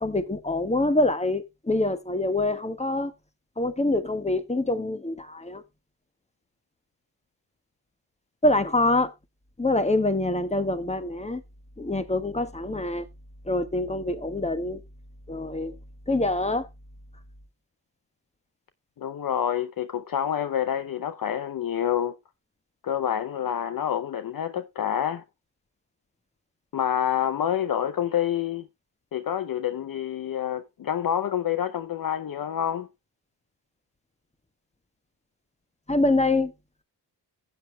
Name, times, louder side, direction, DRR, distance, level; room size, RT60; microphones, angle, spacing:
voice 1, 0.0-3.1 3.6-5.6 8.4-9.1 9.6-11.4 11.8-13.1 13.4-14.8 15.3-15.8 16.1-16.7 35.9-36.5, left 2 dB, 15° left, 1.4 m, -25 dB
voice 2, 19.0-22.1 22.8-25.2 26.7-28.7 29.1-32.9, left 10 dB, 55° left, 0.6 m, -27 dB
15.5 x 8.0 x 2.2 m
supercardioid pair, 40°, 43 cm